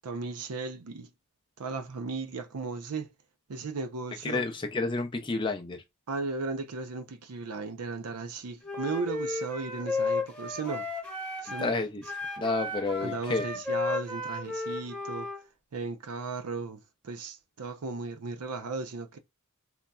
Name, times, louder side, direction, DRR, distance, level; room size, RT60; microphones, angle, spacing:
voice 1, 0.0-1.1 1.6-3.1 3.5-4.4 6.1-10.9 11.4-11.7 13.0-15.3 15.7-19.2, right 4 dB, 85° right, 0.6 m, -36 dB
voice 2, 4.2-5.8 11.6-12.0 12.4-13.5, left 3 dB, 20° left, 0.4 m, -30 dB
Wind instrument woodwind instrument, 8.6-11.7 12.0-15.4, left 3 dB, 5° left, 0.9 m, -34 dB
3.9 x 2.1 x 2.3 m
head